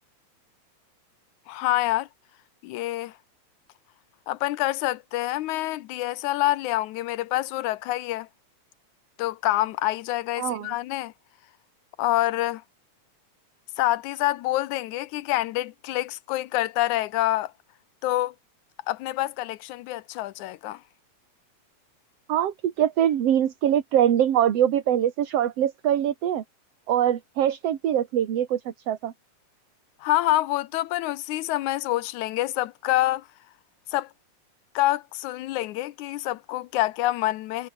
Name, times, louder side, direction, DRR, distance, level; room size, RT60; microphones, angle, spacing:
voice 1, 1.5-2.1 2.6-3.2 4.3-8.3 9.2-11.1 12.0-12.6 13.8-17.5 18.0-18.4 18.9-20.8 30.0-33.3 33.9-34.1 34.8-37.7, left 16 dB, 80° left, 2.2 m, -26 dB
voice 2, 10.4-10.7 22.3-26.4 26.9-29.1, right 10 dB, 60° right, 2.5 m, -23 dB
omnidirectional pair, 3.4 m